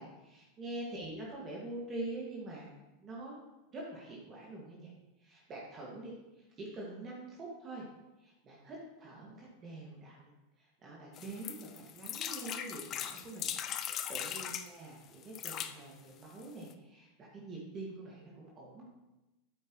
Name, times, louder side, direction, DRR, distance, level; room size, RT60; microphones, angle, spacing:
voice 1, 0.0-2.7 3.0-3.4 3.7-4.9 5.2-7.9 8.2-13.5 13.8-18.9, right 2 dB, 35° right, -4 dB, 2.2 m, -45 dB
sound 1, 11.2-14.7 15.2-15.7 16.4-16.5 16.7-16.8, left 9 dB, 40° left, 0.5 m, -39 dB
8.7 x 8.3 x 3.2 m, 1.0 s
hypercardioid pair, 100°, 0 cm